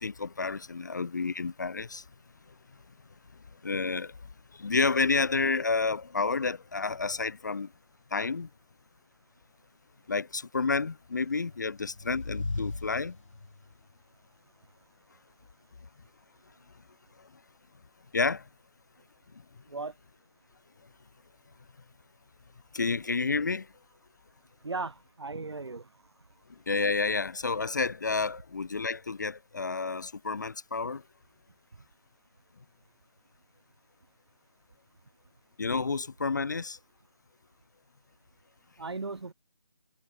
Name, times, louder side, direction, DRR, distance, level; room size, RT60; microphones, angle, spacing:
voice 1, 0.0-2.0 3.6-4.1 4.6-7.7 8.1-8.5 10.1-13.2 18.1-18.4 22.7-23.7 26.7-31.0 35.6-36.8, left 4 dB, 35° left, 0.7 m, -30 dB
sound 1, 11.4-13.7, left 3 dB, 85° left, 0.6 m, -37 dB
voice 2, 24.6-25.9 38.8-39.3, right 3 dB, 60° right, 1.4 m, -36 dB
figure-of-eight pair, 155°, 16 cm